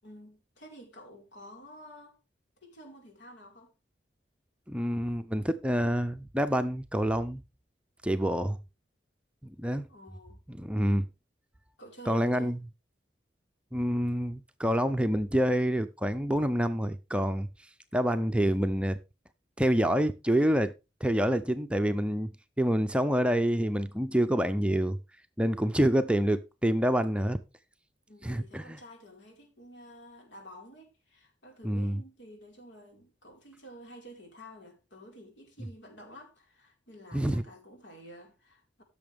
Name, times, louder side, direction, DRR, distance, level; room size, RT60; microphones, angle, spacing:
voice 1, 0.0-2.2 2.6-3.7 9.9-10.4 11.8-12.5 28.1-38.8, equal, 80° left, 4.9 m, -50 dB
voice 2, 4.7-7.4 8.0-8.6 9.4-9.9 10.5-11.0 12.1-12.6 13.7-17.5 17.9-19.0 19.6-20.7 21.0-22.3 22.6-25.0 25.4-27.4 28.2-28.8 31.6-32.0 37.1-37.4, equal, 5° right, 0.5 m, -27 dB
16.0 x 6.9 x 3.5 m
head